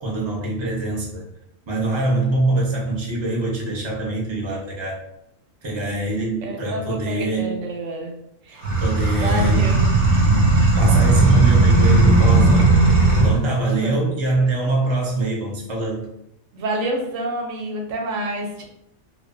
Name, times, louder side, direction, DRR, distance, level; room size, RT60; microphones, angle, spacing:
voice 1, 0.0-1.2 1.7-5.0 5.6-7.6 8.8-9.8 10.7-12.9 13.2-16.1, right 2 dB, 35° right, -3 dB, 0.5 m, -24 dB
voice 2, 6.4-8.2 8.4-8.7 9.2-9.8 13.6-14.0 16.5-18.6, right 1 dB, 90° right, 1 dB, 1.0 m, -28 dB
sound 1, 8.6-13.4, right 3 dB, 70° right, 0.9 m, -16 dB
2.3 x 2.3 x 2.4 m, 0.79 s
omnidirectional pair, 1.3 m